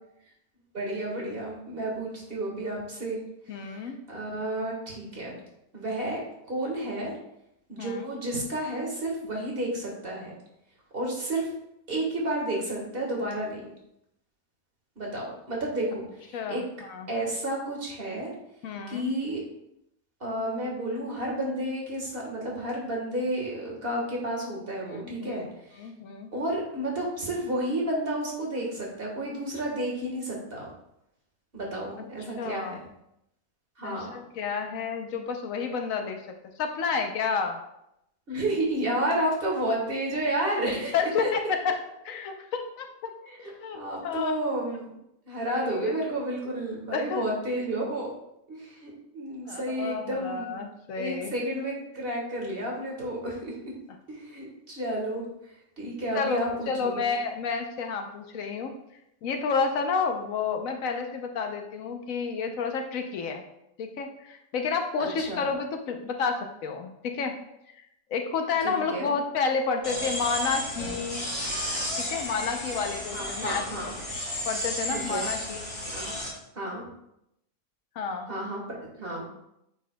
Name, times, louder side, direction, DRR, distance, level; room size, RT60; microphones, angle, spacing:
voice 1, 0.7-3.2 3.6-5.4 5.7-6.2 6.5-7.1 7.7-10.3 10.9-11.5 11.9-13.6 15.0-16.6 17.1-18.3 18.9-19.4 20.2-25.8 26.3-30.6 31.5-32.8 33.8-34.1 38.3-41.3 43.3-44.9 45.3-48.1 48.5-50.6 50.9-53.5 54.1-55.2 55.8-57.0 65.0-65.5 68.6-69.1 73.1-73.9 74.9-75.3 75.9-76.1 76.5-76.8 78.3-78.6 79.0-79.3, right 1 dB, 45° right, -2 dB, 1.7 m, -31 dB
voice 2, 3.5-4.0 7.8-8.0 16.3-16.6 16.9-17.1 18.6-19.1 24.9-25.4 25.8-26.3 32.4-32.8 33.8-36.2 36.6-37.6 40.9-41.8 42.0-43.1 43.4-44.3 45.8-45.9 46.9-47.2 49.5-51.3 56.1-58.7 59.2-63.4 63.8-67.4 68.1-71.3 72.0-73.9 74.5-75.6 78.0-78.3, left 5 dB, 75° left, 5 dB, 1.1 m, -30 dB
sound 1, 69.8-76.3, equal, 20° left, 2.4 m, -33 dB
9.0 x 4.6 x 2.2 m, 0.80 s
omnidirectional pair, 1.4 m